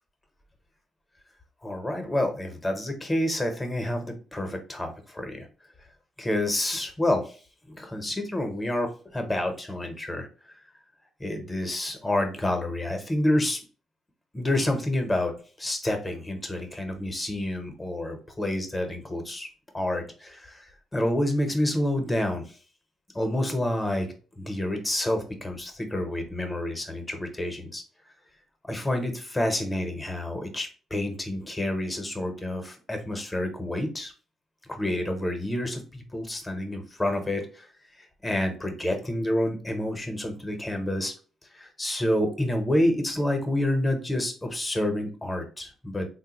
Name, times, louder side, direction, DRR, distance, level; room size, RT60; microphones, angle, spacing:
voice 1, 1.6-5.5 6.2-7.4 7.7-10.3 11.2-13.6 14.3-15.3 15.6-19.5 19.7-22.4 23.1-27.8 28.7-34.1 34.7-37.7 38.2-41.1 41.5-46.1, left 1 dB, 15° left, 5 dB, 0.8 m, -28 dB
3.5 x 2.1 x 3.0 m, 0.38 s
cardioid pair, 90°, 0 cm